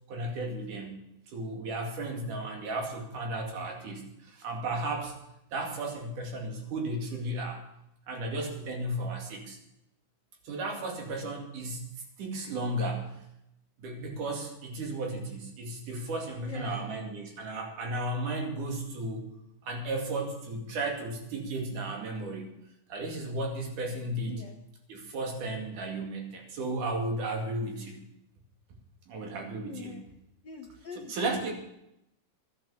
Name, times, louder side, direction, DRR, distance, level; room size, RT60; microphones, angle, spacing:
voice 1, 0.1-5.1 5.5-7.6 8.1-9.6 10.4-11.9 12.2-13.1 13.8-19.3 19.6-22.5 22.9-24.4 24.9-28.0 29.1-30.0 30.9-31.5, right 2 dB, 80° right, 2 dB, 3.9 m, -34 dB
voice 2, 16.4-16.9 24.3-24.6 29.7-30.0 30.4-31.5, left 6 dB, 80° left, 4 dB, 0.9 m, -44 dB
13.0 x 10.5 x 7.1 m, 0.84 s
omnidirectional pair, 3.6 m